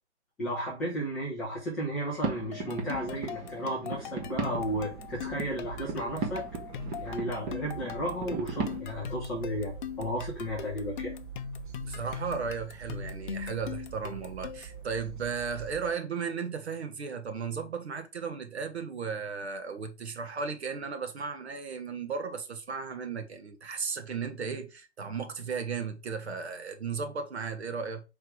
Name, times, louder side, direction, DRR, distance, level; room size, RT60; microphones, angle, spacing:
voice 1, 0.4-6.4 7.0-11.1, equal, ahead, 0.4 m, -33 dB
sound 1, 2.2-8.8, right 4 dB, 15° right, 0.8 m, -37 dB
sound 2, 2.5-14.8, left 8 dB, 45° left, 0.6 m, -41 dB
sound 3, 4.2-15.9, right 9 dB, 45° right, 1.2 m, -45 dB
voice 2, 11.8-28.0, right 5 dB, 65° right, 1.5 m, -35 dB
5.5 x 3.5 x 4.9 m
figure-of-eight pair, 140°, 35 cm